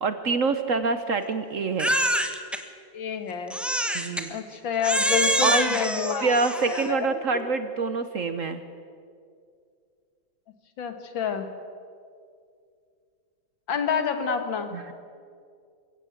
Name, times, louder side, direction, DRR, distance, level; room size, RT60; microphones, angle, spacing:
voice 1, 0.0-1.9 3.9-4.3 5.4-5.8 6.2-8.6 14.7-14.9, right 4 dB, 55° right, 10 dB, 1.0 m, -26 dB
Crying sobbing, 1.8-2.6 3.5-4.3 4.8-6.9, equal, ahead, 0.8 m, -26 dB
voice 2, 2.9-3.5 4.3-6.3 6.7-7.2 10.8-11.5 13.7-14.7, left 6 dB, 80° left, 8 dB, 2.3 m, -28 dB
22.0 x 16.0 x 8.0 m, 2.3 s
omnidirectional pair, 2.1 m